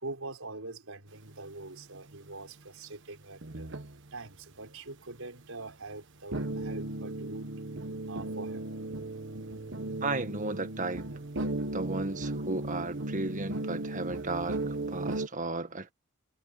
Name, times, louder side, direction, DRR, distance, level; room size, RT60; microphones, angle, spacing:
voice 1, 0.0-3.7 4.1-7.5 8.1-8.6 9.8-9.9, right 2 dB, 80° right, 4.7 m, -43 dB
sound 1, 1.3-2.3 3.3-4.3 5.7-5.8 6.3-15.3, right 2 dB, 60° right, 1.4 m, -36 dB
voice 2, 10.0-11.1 11.7-15.9, right 3 dB, 40° right, 1.7 m, -34 dB
head